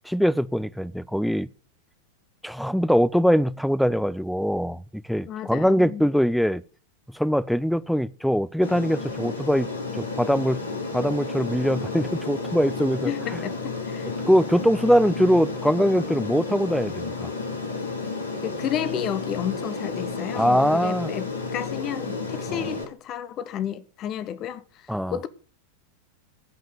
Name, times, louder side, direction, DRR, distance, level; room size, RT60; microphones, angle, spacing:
voice 1, 0.1-1.5 2.4-4.8 5.1-6.6 7.1-10.6 10.9-13.1 14.3-17.3 20.3-21.1 22.5-22.7 24.9-25.2, equal, ahead, 0.5 m, -22 dB
voice 2, 5.2-6.1 13.0-14.1 18.4-21.3 21.5-25.3, left 10 dB, 35° left, 1.2 m, -32 dB
Aircraft, 8.6-22.8, left 3 dB, 75° left, 2.9 m, -32 dB
16.0 x 5.7 x 6.5 m
figure-of-eight pair, 90°, 0 cm